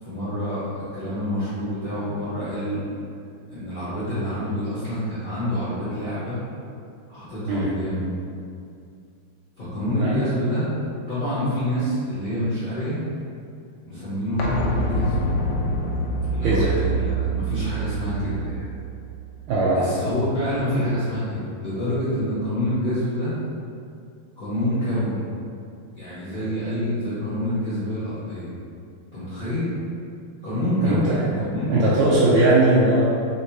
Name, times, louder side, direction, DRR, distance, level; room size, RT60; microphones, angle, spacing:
voice 1, 0.0-2.8 3.5-6.4 7.1-8.1 9.6-10.7 11.1-13.0 13.8-15.1 16.3-18.7 19.7-23.3 24.4-25.2 25.9-28.5 29.1-29.7 30.4-32.2, equal, 25° left, -15 dB, 1.4 m, -27 dB
sound 1, 14.4-20.0 20.3-20.4, right 2 dB, 75° left, 1.0 m, -26 dB
voice 2, 19.5-19.9 30.8-31.2 31.7-33.0, right 2 dB, 80° right, -8 dB, 1.5 m, -19 dB
3.9 x 3.5 x 3.0 m, 2.4 s
omnidirectional pair, 2.3 m